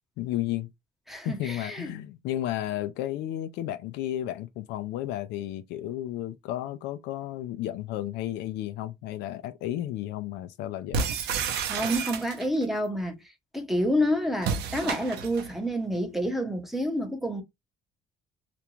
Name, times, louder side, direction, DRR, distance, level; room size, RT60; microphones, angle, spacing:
voice 1, 0.2-0.7 1.2-11.0, left 13 dB, 85° left, 0.4 m, -33 dB
voice 2, 1.1-1.9 11.7-13.2 13.5-17.4, equal, ahead, 0.7 m, -28 dB
sound 1, 10.9-12.6 14.4-15.5, right 6 dB, 80° right, 0.6 m, -30 dB
2.5 x 2.2 x 2.9 m
cardioid pair, 110°, 17 cm